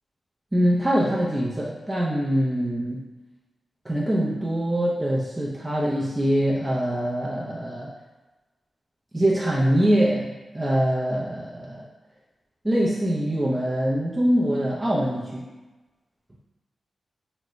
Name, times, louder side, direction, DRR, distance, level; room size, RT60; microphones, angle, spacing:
voice 1, 0.5-3.0 3.8-7.9 9.1-11.9 12.6-15.5, equal, 15° right, -6 dB, 0.5 m, -23 dB
3.5 x 2.1 x 3.0 m, 1.2 s
wide cardioid pair, 95°, 0 cm